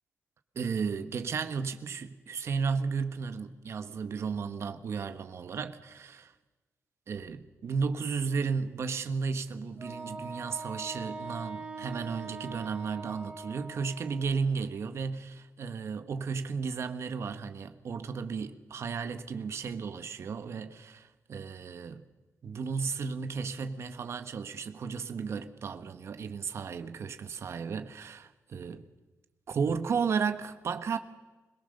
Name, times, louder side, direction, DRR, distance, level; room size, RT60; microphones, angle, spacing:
voice 1, 0.5-6.3 7.1-22.0 22.4-28.8 29.5-31.0, right 5 dB, 55° right, 1.4 m, -34 dB
Wind instrument woodwind instrument, 9.8-14.4, right 3 dB, 20° right, 3.1 m, -42 dB
22.5 x 21.0 x 6.7 m
wide cardioid pair, 130°, 5 cm